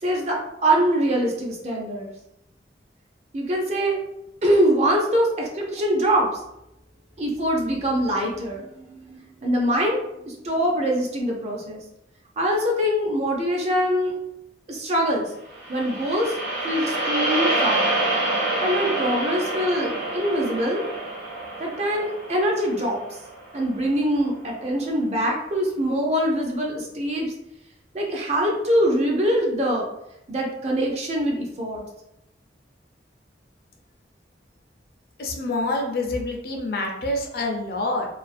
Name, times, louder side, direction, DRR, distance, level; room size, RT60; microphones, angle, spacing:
voice 1, 0.0-2.1 3.3-4.0 4.4-6.3 7.2-11.8 12.4-14.1 14.7-15.3 15.7-16.4 16.6-17.9 18.6-20.8 21.6-23.0 23.5-27.3 27.9-29.8 30.3-31.8, equal, 35° right, -1 dB, 0.5 m, -23 dB
sound 1, 15.5-23.8, right 1 dB, 75° right, 1.0 m, -27 dB
voice 2, 35.2-38.1, left 2 dB, 55° left, 1 dB, 0.5 m, -27 dB
2.4 x 2.3 x 2.5 m, 0.85 s
head